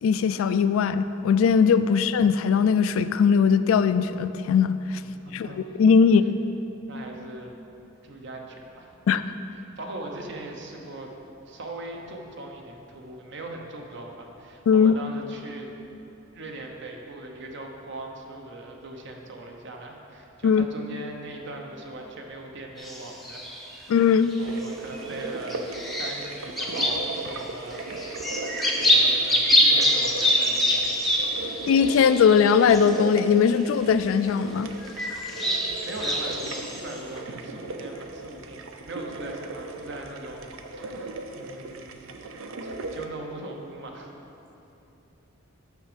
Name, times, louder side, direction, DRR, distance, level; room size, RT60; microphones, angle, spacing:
voice 1, 0.0-5.0 5.3-5.5 5.8-6.2 9.1-9.2 14.7-15.0 20.4-20.7 23.9-24.3 31.7-34.7, left 6 dB, 80° left, 12 dB, 0.3 m, -20 dB
voice 2, 5.0-5.8 6.9-7.5 8.0-8.9 9.5-11.1 11.5-15.7 16.3-24.0 24.4-28.2 28.7-31.4 35.3-42.1 42.6-44.1, right 2 dB, 60° right, 2 dB, 0.9 m, -40 dB
sound 1, 22.8-23.8 24.3-25.0 25.5-27.4 27.7-33.0 33.6-33.7 34.8-37.0, equal, ahead, 0.7 m, -25 dB
sound 2, 24.4-43.1, right 2 dB, 75° right, 0.5 m, -38 dB
6.3 x 6.1 x 5.1 m, 2.9 s
head